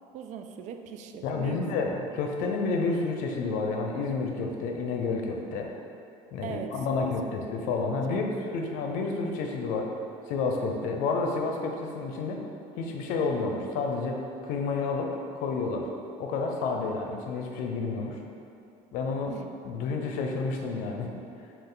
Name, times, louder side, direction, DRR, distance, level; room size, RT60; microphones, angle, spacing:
voice 1, 0.1-1.7 6.4-7.8 8.1-8.4 8.9-9.1 19.3-19.5, right 7 dB, 60° right, 6 dB, 0.4 m, -41 dB
voice 2, 1.2-5.7 6.3-9.9 10.3-12.4 12.8-15.1 15.4-15.9 16.2-18.2 18.9-19.3 19.6-21.1, left 4 dB, 75° left, 2 dB, 0.6 m, -30 dB
5.3 x 2.5 x 3.8 m, 2.6 s
cardioid pair, 115°, 14 cm